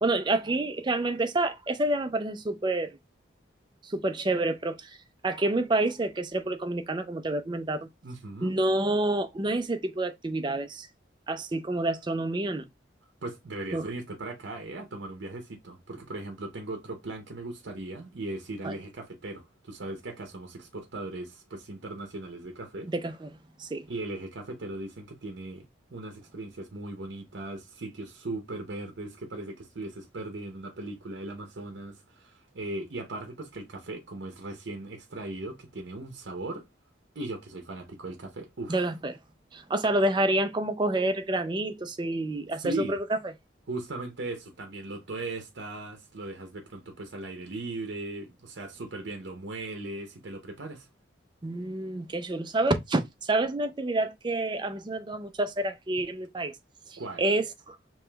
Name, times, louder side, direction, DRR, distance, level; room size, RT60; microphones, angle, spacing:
voice 1, 0.0-3.0 3.8-5.0 5.2-7.9 8.4-10.9 11.3-12.7 13.7-13.9 18.6-18.7 22.9-23.3 23.6-23.9 38.7-39.1 39.5-43.0 51.4-56.5 57.2-57.8, right 2 dB, 25° right, 0.4 m, -28 dB
voice 2, 8.0-8.5 13.2-22.9 23.9-25.6 25.9-36.7 37.1-38.9 42.6-43.0 43.7-50.9 57.0-57.2, right 2 dB, 70° right, 0.7 m, -38 dB
4.8 x 3.0 x 2.2 m
head